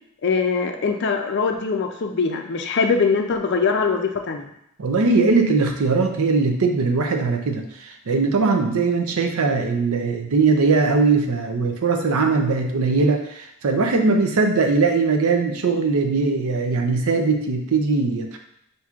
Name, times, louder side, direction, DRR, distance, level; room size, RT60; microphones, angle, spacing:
voice 1, 0.2-4.5, left 5 dB, 50° left, 5 dB, 0.4 m, -22 dB
voice 2, 4.8-18.4, right 4 dB, 75° right, 4 dB, 0.5 m, -20 dB
5.8 x 2.6 x 2.4 m, 0.75 s
head